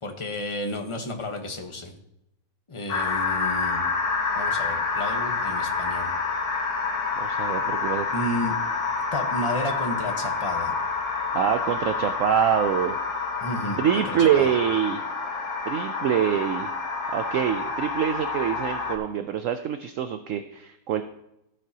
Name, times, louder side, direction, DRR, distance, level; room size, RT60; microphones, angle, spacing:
voice 1, 0.0-1.9 2.7-3.8 4.4-6.1 8.1-8.6 9.1-10.7 13.4-14.5, left 1 dB, 20° left, 3 dB, 1.1 m, -32 dB
sound 1, 2.9-19.0, left 4 dB, 90° left, 1.8 m, -28 dB
voice 2, 7.2-8.1 11.3-13.0 13.8-15.0 15.7-16.7 17.1-21.0, right 9 dB, 65° right, 8 dB, 0.9 m, -25 dB
15.0 x 7.4 x 2.9 m, 0.86 s
omnidirectional pair, 1.6 m